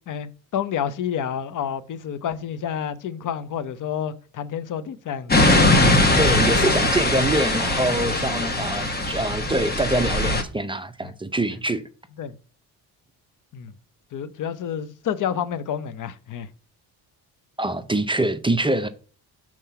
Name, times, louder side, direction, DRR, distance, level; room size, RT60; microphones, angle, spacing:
voice 1, 0.1-5.9 6.5-6.8 8.4-8.9 11.0-11.1 11.5-11.6 12.2-12.3 13.5-13.7 14.1-16.5, left 8 dB, 50° left, 0.8 m, -30 dB
sound 1, 5.3-10.4, left 2 dB, 25° left, 1.2 m, -20 dB
voice 2, 6.2-11.8 17.6-18.9, right 2 dB, 15° right, 0.5 m, -25 dB
5.7 x 4.5 x 5.6 m
cardioid pair, 100°, 40 cm